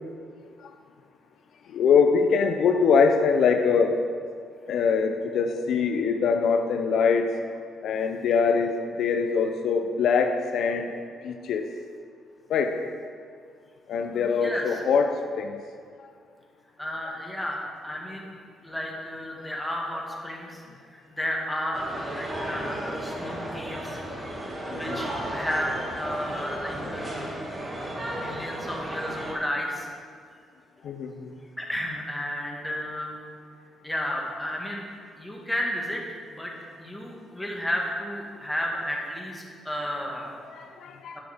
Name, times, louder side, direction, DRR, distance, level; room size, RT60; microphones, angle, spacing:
voice 1, 1.7-4.0 4.7-7.3 7.8-8.7 9.0-10.9 11.2-11.7 12.5-12.8 13.9-15.6 24.7-25.1 30.8-31.3 40.5-41.2, left 5 dB, 70° left, 6 dB, 0.5 m, -23 dB
voice 2, 14.1-14.8 16.8-18.3 18.6-20.6 20.9-24.0 24.7-27.5 28.1-29.9 31.6-33.2 33.8-34.9 35.2-36.0 36.3-36.5 36.8-40.4 41.1-41.2, equal, 5° left, -1 dB, 1.9 m, -32 dB
sound 1, 21.7-29.3, right 1 dB, 20° right, 2.1 m, -34 dB
9.9 x 6.4 x 5.0 m, 2.1 s
cardioid pair, 90°, 0 cm